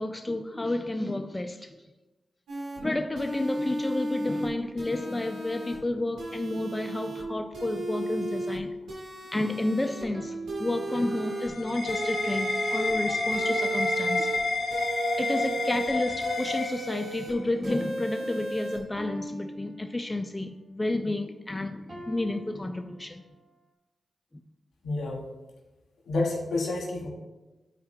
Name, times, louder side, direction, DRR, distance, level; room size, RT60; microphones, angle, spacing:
voice 1, 0.0-1.8 2.8-8.7 9.3-14.3 15.2-23.2, left 2 dB, 25° left, 6 dB, 0.5 m, -31 dB
sound 1, 2.5-2.8 3.2-4.5 4.8-5.8 6.2-7.2 7.5-8.6 8.9-10.0 10.5-11.5 11.9-12.9 13.3-14.4 14.7-15.9 16.2-17.3 17.6-18.8, right 2 dB, 85° right, 1.5 m, -34 dB
sound 2, 10.1-11.5 13.1-14.5 16.1-18.4 19.0-20.5 21.9-23.5, right 1 dB, 30° right, 1.9 m, -44 dB
sound 3, 10.9-17.4, left 3 dB, 60° left, 2.2 m, -30 dB
voice 2, 24.8-25.2 26.1-27.1, left 2 dB, 80° left, -2 dB, 1.8 m, -29 dB
11.5 x 4.6 x 2.3 m, 1.1 s
supercardioid pair, 40°, 0 cm